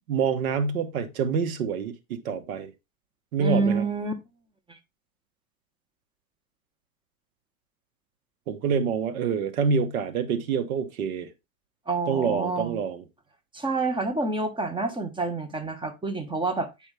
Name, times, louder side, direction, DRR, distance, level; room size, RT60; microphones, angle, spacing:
voice 1, 0.1-2.7 3.3-3.9 8.5-11.3 12.1-13.0, right 6 dB, 90° right, 1.4 m, -26 dB
voice 2, 3.4-4.1 4.7-4.8 11.9-12.8 13.5-16.7, right 3 dB, 10° right, 1.4 m, -28 dB
9.5 x 5.3 x 3.4 m
supercardioid pair, 115°, 42 cm